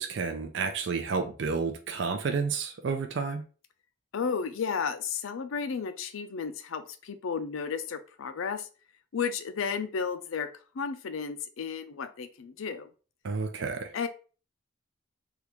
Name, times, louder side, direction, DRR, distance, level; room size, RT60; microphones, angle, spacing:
voice 1, 0.0-3.4 13.2-13.9, right 5 dB, 60° right, 0.4 m, -31 dB
voice 2, 4.1-8.7 9.1-10.5 10.7-12.9 13.9-14.1, left 6 dB, 80° left, 0.4 m, -33 dB
3.4 x 2.4 x 3.0 m
head